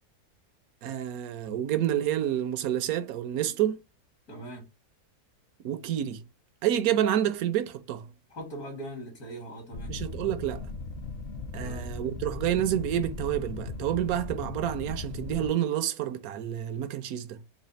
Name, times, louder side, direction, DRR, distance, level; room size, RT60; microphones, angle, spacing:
voice 1, 0.8-3.8 5.6-6.2 6.6-8.1 9.9-10.7 11.5-17.4, right 11 dB, 70° right, 1.0 m, -29 dB
voice 2, 4.3-4.7 8.3-10.0 11.6-11.9, right 1 dB, 65° left, 1.9 m, -40 dB
sound 1, 9.7-15.5, left 3 dB, 50° left, 0.8 m, -37 dB
4.1 x 2.0 x 3.9 m
omnidirectional pair, 1.7 m